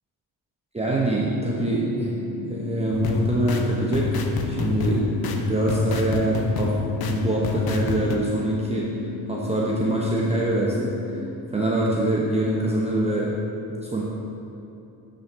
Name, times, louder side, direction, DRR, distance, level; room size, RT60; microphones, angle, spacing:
voice 1, 0.7-2.2 2.4-6.8 7.1-8.9 9.3-13.4 13.7-14.0, right 1 dB, 15° right, -4 dB, 0.8 m, -24 dB
sound 1, 1.2-11.2, left 6 dB, 60° right, 1.4 m, -35 dB
sound 2, 2.9-8.2, left 4 dB, 60° left, 0.7 m, -28 dB
7.1 x 5.2 x 3.6 m, 2.9 s
supercardioid pair, 55°, 42 cm